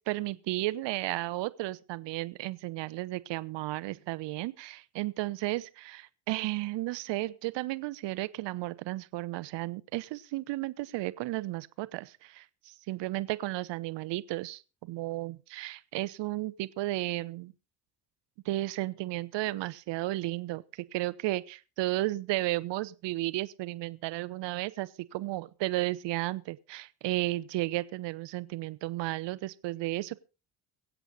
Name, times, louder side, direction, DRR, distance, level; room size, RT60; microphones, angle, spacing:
voice 1, 0.0-17.5 18.4-20.6 20.9-30.2, right 18 dB, 65° right, 0.9 m, -33 dB
23.5 x 8.1 x 4.0 m
hypercardioid pair, 60°, 47 cm